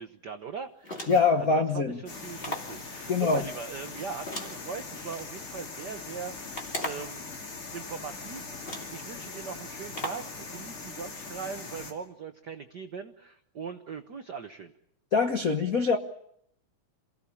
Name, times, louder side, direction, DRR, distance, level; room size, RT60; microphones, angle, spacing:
voice 1, 0.0-1.1 1.4-7.3 7.7-14.7, right 6 dB, 80° right, 0.9 m, -40 dB
sound 1, 0.8-1.4 2.4-2.8 4.3-5.3 6.5-7.2 8.1-8.2 8.6-9.0 9.9-10.3, left 1 dB, 20° left, 2.8 m, -37 dB
voice 2, 1.1-2.0 3.1-3.4 15.1-16.0, left 4 dB, 85° left, 0.7 m, -24 dB
sound 2, 2.1-11.9, left 3 dB, 45° left, 3.4 m, -41 dB
28.0 x 17.0 x 8.6 m
omnidirectional pair, 3.5 m